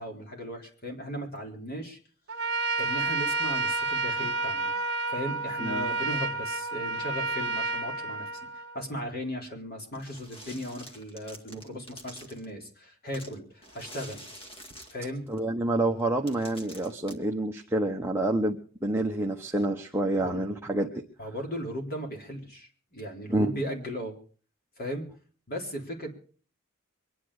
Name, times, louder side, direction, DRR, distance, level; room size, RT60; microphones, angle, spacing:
voice 1, 0.0-2.0 2.8-4.7 5.1-8.3 8.7-14.2 14.9-15.2 20.1-20.4 21.2-24.2 24.8-25.1 25.5-26.1, equal, 45° left, 2 dB, 3.9 m, -37 dB
Trumpet, 2.3-8.8, right 3 dB, 55° right, 2.1 m, -30 dB
sound 1, 9.9-12.5 13.1-15.4 16.0-16.1 16.3-17.1, equal, 25° left, 2.0 m, -47 dB
voice 2, 15.3-21.0 23.3-23.5, right 1 dB, 10° right, 1 dB, 1.0 m, -28 dB
24.5 x 10.0 x 4.9 m, 0.43 s
head